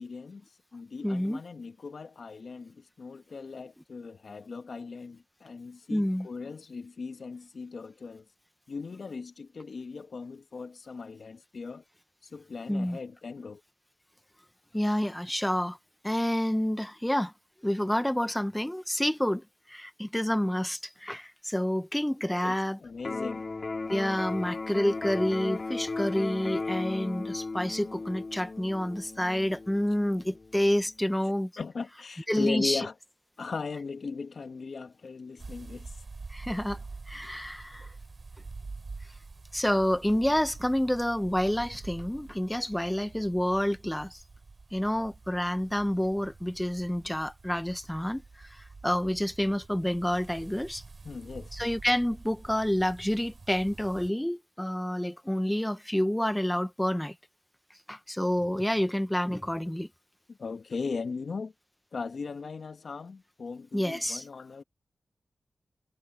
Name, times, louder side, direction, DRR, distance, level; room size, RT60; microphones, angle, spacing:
voice 1, 0.0-8.2 8.7-11.8 12.2-13.6 22.3-23.5 31.6-32.9 33.4-36.0 51.0-51.5 60.3-61.5 61.9-64.6, left 4 dB, 70° left, 1.5 m, -38 dB
voice 2, 1.0-1.4 5.9-6.3 12.7-13.0 14.7-15.8 16.0-17.3 17.6-22.8 23.9-31.5 32.3-32.9 36.3-36.8 37.1-37.9 39.5-44.2 44.7-50.8 51.5-57.1 57.9-59.9 63.7-64.3, equal, 10° left, 1.1 m, -28 dB
Electric guitar, 23.0-31.0, left 3 dB, 50° left, 2.6 m, -36 dB
sound 1, 35.4-54.1, right 3 dB, 55° right, 7.5 m, -47 dB
cardioid pair, 55°, 0 cm